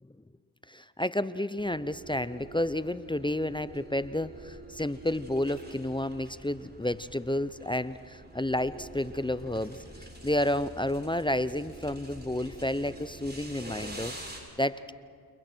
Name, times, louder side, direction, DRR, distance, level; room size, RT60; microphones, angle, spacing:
voice 1, 0.7-9.8 10.2-14.9, left 1 dB, 10° left, 15 dB, 0.8 m, -31 dB
sound 1, 1.6-14.4, right 1 dB, 20° right, 6.8 m, -46 dB
29.5 x 28.5 x 4.5 m, 2.3 s
supercardioid pair, 45°, 46 cm